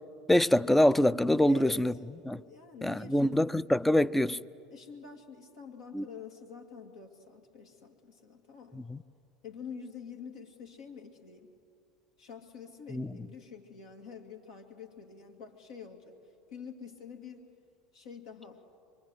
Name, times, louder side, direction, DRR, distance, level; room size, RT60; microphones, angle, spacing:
voice 1, 0.3-1.9 2.3-2.4 2.8-4.4 5.9-6.0 8.9-9.0 12.9-13.1, left 1 dB, 5° left, 0.5 m, -24 dB
voice 2, 1.5-1.9 2.5-3.5 4.7-8.9 9.4-11.5 12.2-16.2 16.5-17.5 17.9-18.6, left 6 dB, 70° left, 2.4 m, -47 dB
25.0 x 24.5 x 8.1 m
hypercardioid pair, 75°, 3 cm